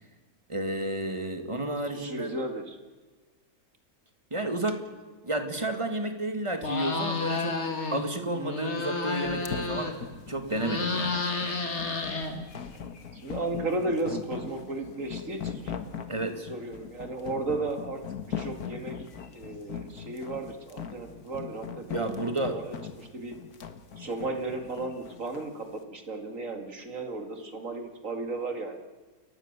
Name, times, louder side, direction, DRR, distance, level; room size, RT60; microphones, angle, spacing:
voice 1, 0.5-2.4 4.3-4.8 5.2-10.0 10.3-11.5 16.1-16.4 21.9-22.6, right 1 dB, 20° right, 7 dB, 2.1 m, -31 dB
voice 2, 1.9-2.8 13.1-15.7 16.4-19.0 19.3-23.3 24.0-28.8, right 2 dB, 55° right, 5 dB, 2.8 m, -34 dB
sound 1, 6.6-8.0 8.3-10.1 10.5-12.7, left 3 dB, 45° left, 2.3 m, -31 dB
sound 2, 9.3-25.5, left 7 dB, 70° left, 1.9 m, -40 dB
29.0 x 15.0 x 6.8 m, 1.3 s
omnidirectional pair, 1.7 m